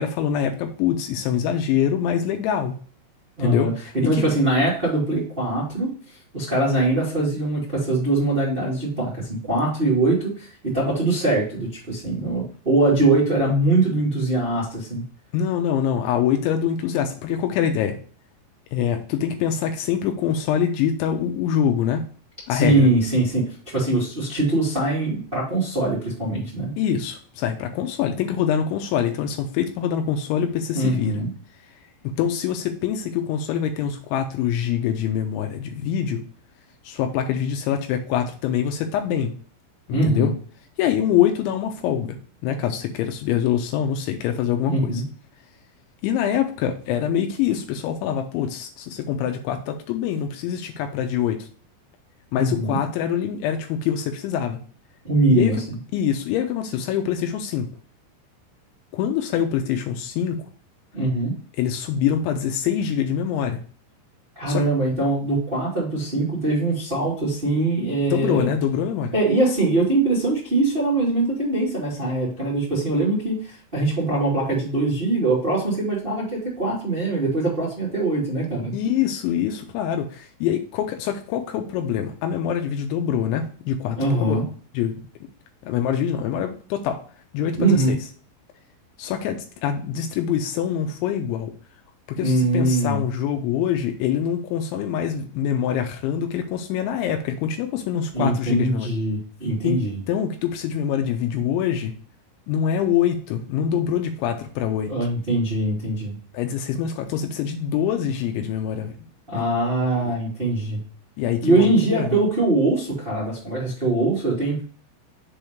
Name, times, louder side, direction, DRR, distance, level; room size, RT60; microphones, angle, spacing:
voice 1, 0.0-2.8 3.4-3.7 4.0-4.3 15.3-18.0 18.7-22.0 22.5-22.9 26.8-31.1 32.0-36.2 36.8-39.3 39.9-40.3 40.8-42.2 42.4-45.0 46.0-51.5 52.3-54.6 55.3-55.6 55.9-57.7 58.9-60.5 61.6-63.6 64.5-64.6 68.1-69.1 78.7-84.0 84.3-84.4 84.7-85.0 85.6-87.0 87.3-88.0 89.0-91.5 92.1-98.9 99.6-99.8 100.1-101.9 102.5-104.9 106.3-108.9 109.3-109.5 110.0-110.1 111.2-112.2, left 9 dB, 80° left, 5 dB, 2.9 m, -24 dB
voice 2, 3.4-15.0 22.5-23.4 23.7-26.7 30.7-31.3 39.9-40.3 44.6-45.0 52.3-52.8 55.0-55.6 60.9-61.3 64.3-68.5 69.1-78.7 84.0-84.4 87.6-87.9 92.2-93.0 98.1-100.0 104.9-106.2 109.3-110.8 111.4-114.6, right 2 dB, 60° right, -6 dB, 0.5 m, -22 dB
7.1 x 3.0 x 5.0 m, 0.44 s
omnidirectional pair, 5.7 m